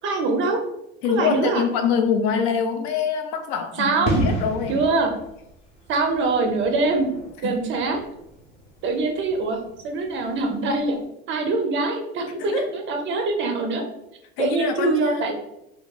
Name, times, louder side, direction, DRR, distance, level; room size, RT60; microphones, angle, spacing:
voice 1, 0.0-0.6 1.1-1.6 3.8-4.3 4.7-5.1 5.9-7.1 7.4-8.0 8.8-9.6 9.8-11.0 11.3-13.8 14.4-15.3, right 3 dB, 35° right, 4 dB, 0.4 m, -23 dB
voice 2, 1.0-4.8 7.4-7.6 12.4-12.7 14.4-15.3, left 6 dB, 60° left, 7 dB, 0.4 m, -25 dB
sound 1, 4.0-10.5 10.8-11.0, equal, 20° left, 0.6 m, -32 dB
2.7 x 2.3 x 2.3 m, 0.83 s
supercardioid pair, 120°, 33 cm